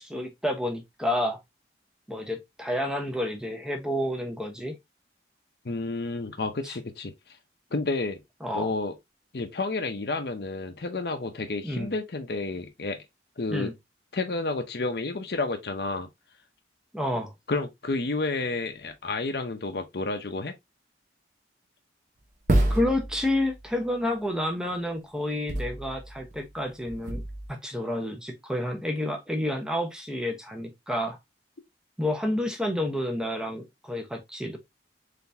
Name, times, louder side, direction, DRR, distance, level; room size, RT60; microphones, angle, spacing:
voice 1, 0.0-1.4 2.1-4.8 6.6-6.7 8.4-8.7 11.6-11.9 13.5-13.7 16.9-17.3 22.7-27.2 27.5-31.2 32.0-34.6, left 1 dB, 5° right, 0.8 m, -29 dB
voice 2, 5.6-7.1 7.7-8.2 8.5-8.9 9.3-13.1 13.4-13.7 14.1-16.1 17.5-20.5, left 3 dB, 60° left, 0.7 m, -30 dB
sound 1, 22.5-23.7 25.5-26.4 26.9-27.5, right 1 dB, 45° right, 0.8 m, -28 dB
3.9 x 3.4 x 2.6 m
head